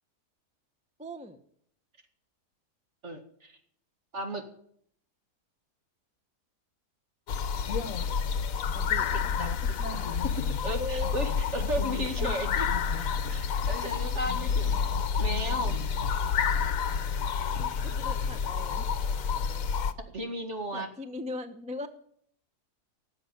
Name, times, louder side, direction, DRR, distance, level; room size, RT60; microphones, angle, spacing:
voice 1, 1.0-1.4 8.7-9.1 10.7-11.1 14.3-14.6 17.5-18.9 20.7-21.9, left 1 dB, 5° right, 9 dB, 0.8 m, -39 dB
voice 2, 3.0-3.6 4.1-4.5 9.4-10.3 10.6-12.7 13.3-14.9 15.2-15.8 20.1-20.9, equal, 45° right, 5 dB, 2.4 m, -35 dB
sound 1, 7.3-19.9, left 6 dB, 60° left, 1.3 m, -29 dB
18.5 x 7.9 x 9.2 m, 0.66 s
omnidirectional pair, 1.7 m